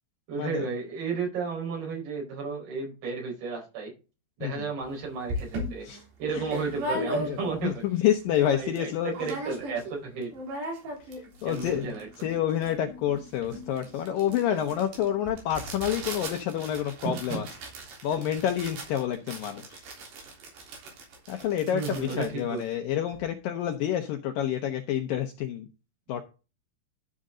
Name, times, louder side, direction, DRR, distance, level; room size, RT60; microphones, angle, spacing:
voice 1, 0.3-3.9 4.4-5.9 6.2-7.8 8.3-10.3 11.4-12.1 17.0-17.4 21.7-22.6, right 5 dB, 65° right, -1 dB, 6.5 m, -33 dB
sound 1, 4.8-4.9 5.3-7.7 8.1-8.2 8.4-8.8 9.1-10.0 10.2-23.3, equal, 90° right, 5.8 m, -38 dB
voice 2, 7.2-9.1 11.4-11.9 12.2-17.5 18.0-19.8 21.3-25.7 26.1-26.2, left 10 dB, 75° left, 6 dB, 2.1 m, -28 dB
12.5 x 6.5 x 3.7 m, 0.31 s
omnidirectional pair, 4.8 m